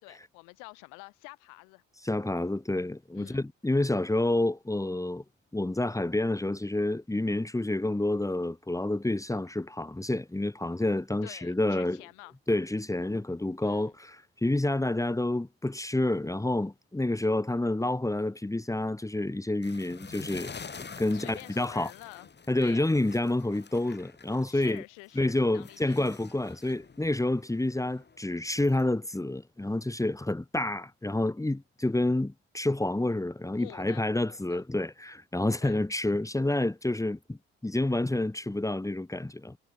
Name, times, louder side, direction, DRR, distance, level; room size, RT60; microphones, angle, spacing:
voice 1, 0.0-1.8 3.2-3.4 11.2-12.3 13.6-13.9 21.1-22.3 22.6-22.9 24.5-26.0 33.6-34.6 35.6-35.8, left 31 dB, 75° left, 6.1 m, -48 dB
voice 2, 2.0-5.2 5.5-12.0 12.5-20.6 21.0-21.9 22.5-24.8 25.2-39.6, left 2 dB, 10° left, 2.3 m, -29 dB
sound 1, 19.6-24.8 25.1-28.8, left 5 dB, 35° left, 7.8 m, -47 dB
hypercardioid pair, 55°, 31 cm